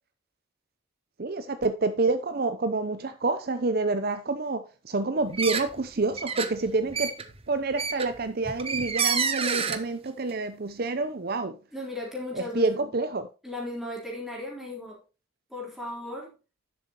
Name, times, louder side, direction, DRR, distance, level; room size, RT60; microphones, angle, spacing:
voice 1, 1.2-7.1 7.5-11.6 12.3-13.3, right 3 dB, 45° right, 0.6 m, -28 dB
sound 1, 5.3-5.9 6.1-9.8, right 6 dB, 30° right, 1.0 m, -29 dB
voice 2, 11.7-12.7 13.4-15.0 15.5-16.3, left 1 dB, ahead, 3.8 m, -36 dB
11.0 x 7.9 x 2.9 m
head